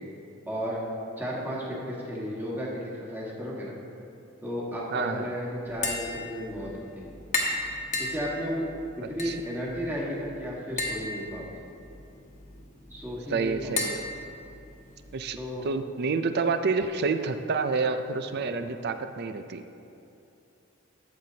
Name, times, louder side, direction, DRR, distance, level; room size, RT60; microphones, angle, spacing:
voice 1, 0.5-0.8 1.2-3.8 4.4-7.1 8.0-8.6 9.0-11.6 12.9-13.8 15.4-15.6 18.3-18.4, equal, 10° right, -5 dB, 1.5 m, -34 dB
voice 2, 4.9-5.3 9.2-9.3 13.3-14.0 15.1-15.4 15.6-19.6, right 4 dB, 50° right, 9 dB, 0.4 m, -28 dB
Tap, 5.7-15.1, left 2 dB, 35° left, 1.1 m, -36 dB
12.5 x 7.9 x 2.8 m, 2.8 s
head